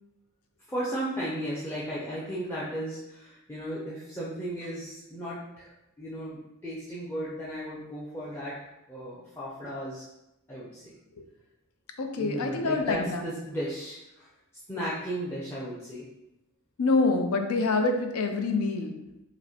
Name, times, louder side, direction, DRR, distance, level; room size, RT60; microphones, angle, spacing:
voice 1, 0.7-5.7 6.0-8.6 8.9-10.0 10.5-10.9 12.2-14.3 14.7-16.0, equal, 10° left, -9 dB, 0.5 m, -35 dB
voice 2, 12.0-13.2 16.8-18.9, left 3 dB, 90° left, 5 dB, 0.5 m, -26 dB
5.1 x 2.1 x 2.8 m, 0.91 s
head